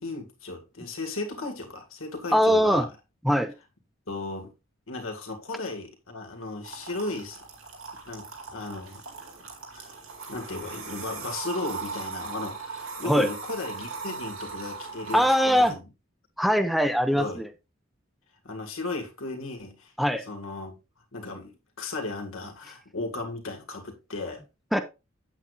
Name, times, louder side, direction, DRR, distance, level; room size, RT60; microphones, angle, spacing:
voice 1, 0.0-2.9 4.1-4.5 4.9-7.4 8.1-9.0 9.7-9.9 10.3-15.8 17.1-17.4 18.4-19.9 20.2-20.8 21.1-24.4, left 2 dB, 90° left, 1.9 m, -35 dB
voice 2, 2.3-2.9 3.2-3.5 13.0-13.3 15.1-15.7 16.4-17.5 20.0-20.2 24.7-24.8, equal, ahead, 0.6 m, -21 dB
sound 1, 6.6-15.7, right 4 dB, 90° right, 2.4 m, -39 dB
8.4 x 8.1 x 2.4 m
head